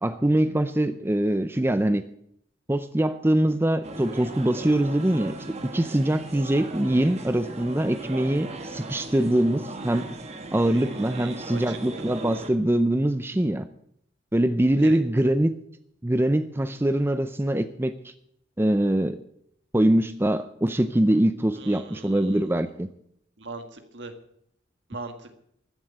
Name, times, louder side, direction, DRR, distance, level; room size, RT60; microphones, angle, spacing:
voice 1, 0.0-2.0 2.7-5.4 5.6-10.1 10.5-13.7 14.3-15.5 16.0-18.1 18.6-19.2 19.7-22.9, right 1 dB, 10° right, 11 dB, 0.5 m, -23 dB
sound 1, 3.8-12.5, right 2 dB, 35° right, 1.5 m, -38 dB
voice 2, 10.6-12.0 14.8-15.0 21.5-22.5 23.4-24.1 24.9-25.4, right 3 dB, 65° right, 7 dB, 1.8 m, -40 dB
14.5 x 7.7 x 8.5 m, 0.71 s
head